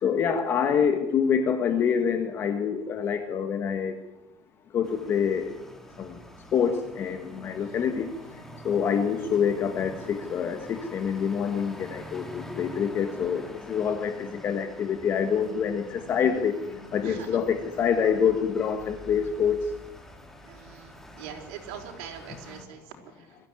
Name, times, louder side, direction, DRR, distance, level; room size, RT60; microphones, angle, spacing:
voice 1, 0.0-3.9 4.7-5.5 6.0-6.1 6.5-8.1 8.6-13.4 13.7-16.6 16.9-19.6, left 7 dB, 30° left, 7 dB, 1.5 m, -26 dB
sound 1, 4.8-22.7, equal, 5° left, 2.0 m, -45 dB
voice 2, 7.6-7.9 17.0-17.4 20.4-23.4, right 8 dB, 80° right, 2 dB, 5.2 m, -43 dB
22.5 x 15.0 x 9.6 m, 0.93 s
cardioid pair, 175°, 8 cm